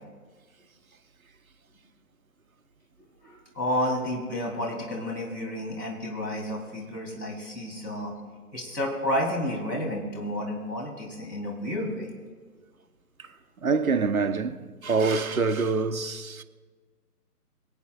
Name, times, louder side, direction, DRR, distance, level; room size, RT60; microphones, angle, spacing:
voice 1, 3.2-8.1 8.5-12.1, left 1 dB, 85° left, 3.5 m, -31 dB
voice 2, 13.6-16.4, right 4 dB, 60° right, 0.9 m, -25 dB
25.0 x 8.9 x 2.4 m
figure-of-eight pair, 145°, 47 cm